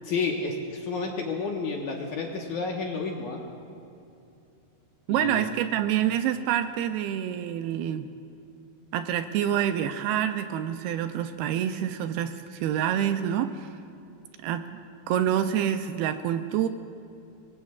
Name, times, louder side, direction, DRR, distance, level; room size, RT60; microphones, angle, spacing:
voice 1, 0.0-3.4 5.1-5.5, left 4 dB, 65° left, -1 dB, 2.3 m, -31 dB
voice 2, 5.1-8.1 8.9-13.7 14.4-14.8 15.1-16.7, right 10 dB, 80° right, 8 dB, 2.4 m, -27 dB
26.0 x 22.5 x 2.4 m, 2.7 s
omnidirectional pair, 4.7 m